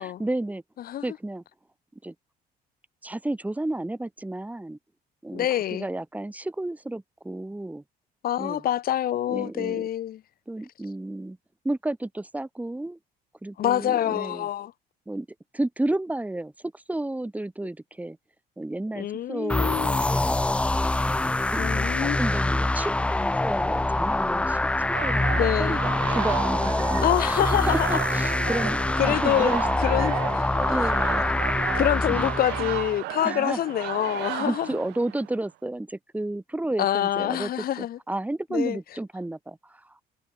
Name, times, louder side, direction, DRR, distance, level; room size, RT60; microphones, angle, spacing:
voice 1, 0.0-0.6 1.0-1.4 2.0-2.1 3.0-4.8 5.2-7.8 8.4-8.6 9.3-9.9 10.5-11.4 11.6-13.0 13.4-14.5 15.1-15.3 15.5-18.2 18.6-19.8 20.1-20.4 21.1-21.6 22.0-28.8 29.0-29.6 30.3-30.4 30.7-31.2 32.1-32.2 33.2-33.6 34.1-37.5 37.8-40.0, right 1 dB, 10° right, 2.3 m, -32 dB
voice 2, 5.3-5.9 8.2-10.2 13.6-14.7 18.9-20.2 21.6-22.2 25.4-25.8 27.0-27.9 29.0-29.5 29.8-30.4 31.7-34.7 36.8-38.0 38.5-38.8, left 12 dB, 60° left, 3.2 m, -26 dB
sound 1, 19.5-33.0, left 2 dB, 5° left, 0.3 m, -25 dB
sound 2, 24.9-35.4, right 20 dB, 85° right, 0.8 m, -34 dB
cardioid pair, 110°, 17 cm